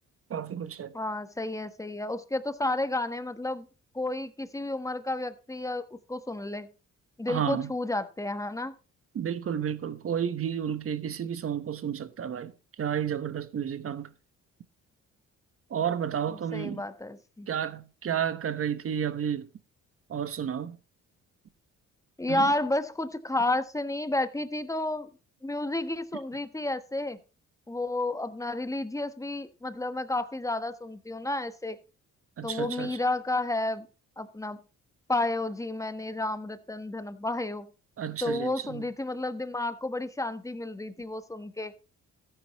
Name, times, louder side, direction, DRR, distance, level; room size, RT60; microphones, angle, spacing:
voice 1, 0.3-0.9 7.3-7.7 9.1-12.5 12.8-14.1 15.7-16.8 17.5-19.5 20.1-20.8 22.3-22.5 32.4-33.0 38.0-38.8, right 8 dB, 50° right, 1.1 m, -31 dB
voice 2, 0.9-3.7 3.9-6.7 7.2-8.7 16.3-17.5 22.2-25.1 25.4-27.2 27.7-31.8 32.4-33.9 34.2-34.6 35.1-37.7 38.2-41.7, left 2 dB, 10° left, 1.1 m, -31 dB
14.0 x 9.8 x 3.0 m
cardioid pair, 90°, 30 cm